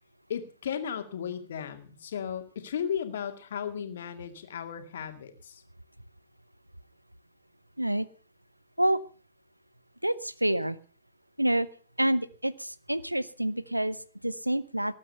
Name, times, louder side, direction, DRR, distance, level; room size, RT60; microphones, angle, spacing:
voice 1, 0.3-5.6, left 8 dB, 65° left, 7 dB, 2.1 m, -35 dB
voice 2, 10.0-10.8 11.4-11.7 12.0-14.9, right 1 dB, 90° right, 18 dB, 0.8 m, -28 dB
19.0 x 9.0 x 5.5 m, 0.40 s
figure-of-eight pair, 90°, 0 cm